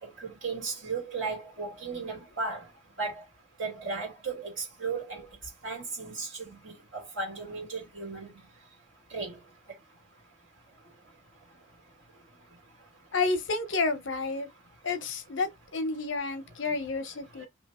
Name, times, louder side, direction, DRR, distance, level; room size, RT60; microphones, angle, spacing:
voice 1, 0.0-2.6 3.0-3.2 3.6-5.3 5.6-8.3 9.1-9.4 17.4-17.5, right 4 dB, 80° right, 2.2 m, -35 dB
voice 2, 13.1-14.5 14.8-17.4, left 3 dB, 70° left, 0.8 m, -30 dB
3.1 x 2.8 x 4.2 m
head